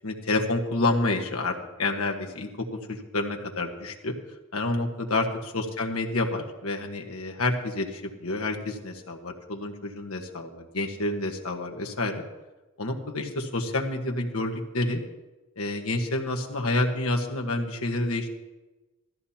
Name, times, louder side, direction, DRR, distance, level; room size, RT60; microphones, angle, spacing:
voice 1, 0.0-4.1 4.5-12.2 12.8-15.0 15.6-18.3, left 2 dB, 75° left, 2 dB, 1.4 m, -29 dB
16.5 x 13.5 x 2.9 m, 1.1 s
head